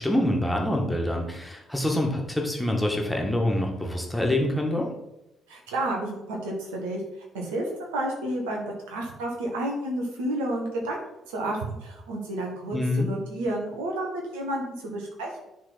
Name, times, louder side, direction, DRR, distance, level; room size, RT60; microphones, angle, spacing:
voice 1, 0.0-4.9 12.7-13.1, left 1 dB, 5° left, 0 dB, 1.8 m, -26 dB
voice 2, 5.5-7.0 7.3-11.0 11.3-15.5, right 1 dB, 70° right, 0 dB, 1.5 m, -31 dB
10.5 x 4.0 x 4.1 m, 0.90 s
figure-of-eight pair, 45°, 0 cm